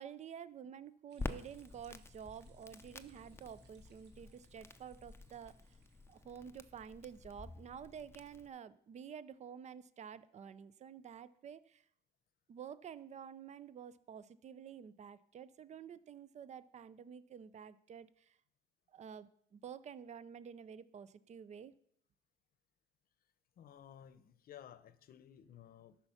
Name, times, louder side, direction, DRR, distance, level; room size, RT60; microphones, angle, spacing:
voice 1, 0.0-5.8 6.1-11.8 12.5-18.4 18.9-21.7, right 8 dB, 35° right, 17 dB, 0.5 m, -50 dB
sound 1, 1.1-6.2, right 4 dB, 65° right, 1.6 m, -70 dB
Crackle, 1.2-8.5, left 3 dB, 15° left, 0.6 m, -49 dB
voice 2, 23.6-26.0, left 10 dB, 50° left, 15 dB, 0.8 m, -56 dB
13.0 x 5.8 x 5.6 m, 0.68 s
cardioid pair, 110°, 19 cm